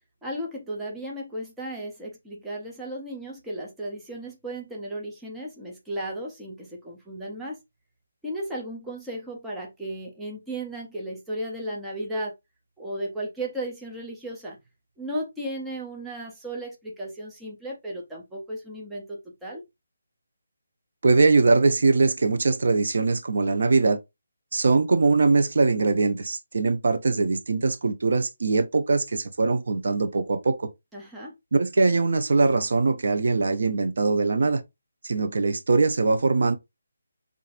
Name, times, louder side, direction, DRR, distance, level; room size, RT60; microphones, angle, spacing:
voice 1, 0.2-7.6 8.2-12.3 12.8-14.6 15.0-19.6 30.9-31.3, right 1 dB, 5° right, 0.5 m, -35 dB
voice 2, 21.0-24.0 24.5-30.7 31.5-34.6 35.0-36.6, right 3 dB, 50° right, 0.6 m, -22 dB
5.6 x 2.5 x 2.4 m
hypercardioid pair, 180°, 0 cm